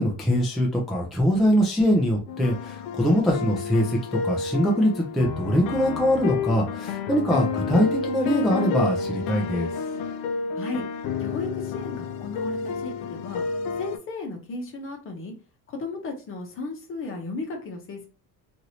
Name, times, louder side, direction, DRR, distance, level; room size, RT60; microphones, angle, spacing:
voice 1, 0.0-9.7, equal, ahead, -1 dB, 0.3 m, -23 dB
sound 1, 2.3-14.0, left 5 dB, 65° left, 0.5 m, -30 dB
voice 2, 11.2-13.4 13.8-15.3 15.7-18.1, left 3 dB, 35° left, 2 dB, 0.8 m, -35 dB
3.0 x 2.6 x 2.8 m, 0.36 s
cardioid pair, 165°, 38 cm